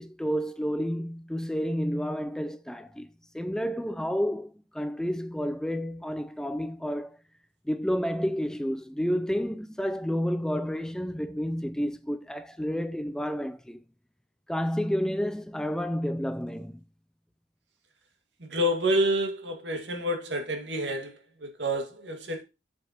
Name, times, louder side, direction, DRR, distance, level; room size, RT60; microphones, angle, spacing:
voice 1, 0.0-3.1 3.3-7.2 7.7-13.8 14.5-16.8, equal, 5° left, 0.4 m, -30 dB
voice 2, 18.4-22.4, equal, 85° right, 2.0 m, -28 dB
7.2 x 7.0 x 2.9 m
head